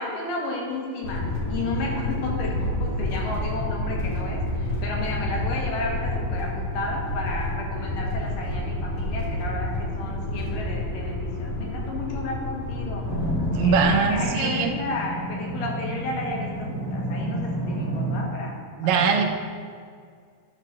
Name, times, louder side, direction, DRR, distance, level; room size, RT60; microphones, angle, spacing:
voice 1, 0.0-13.1 13.6-13.8 14.1-19.1, left 2 dB, 80° left, -1 dB, 3.0 m, -32 dB
sound 1, 1.0-14.2, left 1 dB, 50° left, 2.0 m, -29 dB
sound 2, 13.0-18.2, right 1 dB, 5° right, 1.5 m, -30 dB
voice 2, 13.5-14.7 18.8-19.2, right 5 dB, 70° right, 3 dB, 1.9 m, -21 dB
11.0 x 4.1 x 6.3 m, 2.1 s
omnidirectional pair, 3.8 m